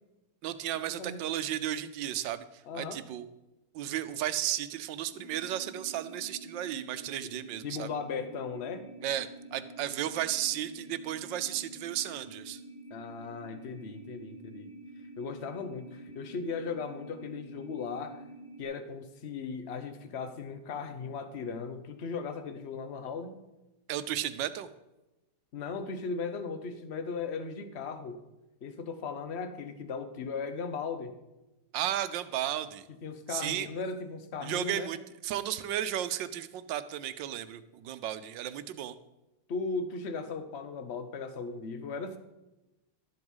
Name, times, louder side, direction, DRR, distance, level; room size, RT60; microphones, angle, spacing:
voice 1, 0.4-2.4 2.7-3.3 3.7-7.9 9.0-12.6 23.9-24.7 31.7-32.9 33.3-33.7 34.4-38.9, right 11 dB, 80° right, 12 dB, 1.4 m, -34 dB
voice 2, 1.0-1.3 2.6-3.0 7.2-7.3 7.6-8.9 12.9-14.7 15.2-18.2 18.6-23.3 25.5-28.2 28.6-31.1 33.0-34.9 39.5-42.2, left 5 dB, 45° left, 9 dB, 1.0 m, -37 dB
sound 1, 5.1-18.6, right 1 dB, 80° left, 2.9 m, -48 dB
12.0 x 7.8 x 5.5 m, 1.0 s
omnidirectional pair, 2.0 m